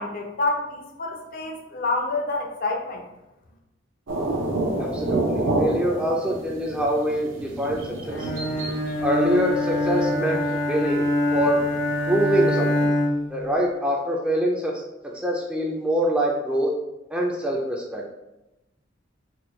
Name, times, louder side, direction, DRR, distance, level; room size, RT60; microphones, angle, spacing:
voice 1, 0.0-3.0, left 3 dB, 50° left, 2 dB, 0.5 m, -28 dB
sound 1, 4.1-12.8, right 2 dB, 80° right, 0.6 m, -30 dB
voice 2, 4.8-7.8 8.1-8.3 9.0-11.0 11.3-11.6 12.1-12.9 13.3-14.8 15.1-16.7 17.1-18.0, right 1 dB, 5° right, -2 dB, 0.4 m, -24 dB
Bowed string instrument, 8.1-13.4, left 1 dB, 70° left, 1.0 m, -24 dB
4.4 x 2.3 x 3.1 m, 0.95 s
head